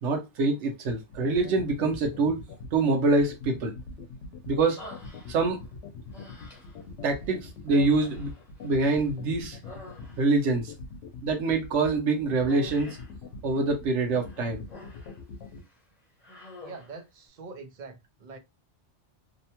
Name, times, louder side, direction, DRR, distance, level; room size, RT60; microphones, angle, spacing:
voice 1, 0.0-2.4 2.7-3.7 4.5-4.8 5.3-5.6 7.0-8.3 8.6-9.6 10.2-10.7 11.2-13.0 13.4-14.6, right 3 dB, 90° right, 1.0 m, -25 dB
sound 1, 1.0-15.6, left 5 dB, 90° left, 0.9 m, -42 dB
Human voice, 4.8-5.7 6.1-6.9 7.6-9.1 9.4-10.5 12.5-13.2 14.2-15.2 15.6-15.8 16.2-17.0, left 2 dB, 35° left, 1.0 m, -47 dB
voice 2, 16.6-18.4, right 4 dB, 50° right, 0.7 m, -44 dB
2.8 x 2.1 x 2.8 m
omnidirectional pair, 1.2 m